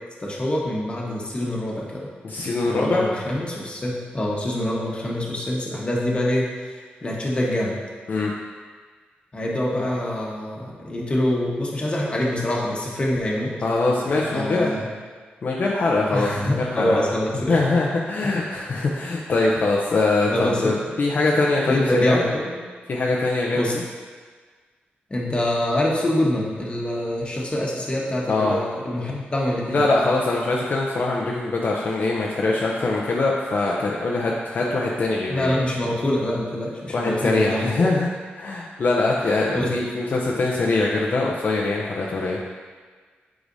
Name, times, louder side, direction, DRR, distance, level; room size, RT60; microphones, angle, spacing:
voice 1, 0.2-2.1 2.7-7.8 9.3-13.5 14.0-14.9 16.1-17.6 20.3-20.7 21.6-22.6 23.5-23.7 25.1-29.9 35.3-37.9 39.5-39.7, left 1 dB, 30° left, -3 dB, 1.2 m, -25 dB
voice 2, 2.2-3.1 8.1-8.3 13.6-14.7 15.4-17.0 17.5-22.2 22.9-23.8 28.3-28.6 29.7-35.6 36.9-38.1 38.4-42.4, left 3 dB, 55° left, -3 dB, 0.6 m, -23 dB
8.0 x 4.9 x 2.7 m, 1.5 s
wide cardioid pair, 105°, 4 cm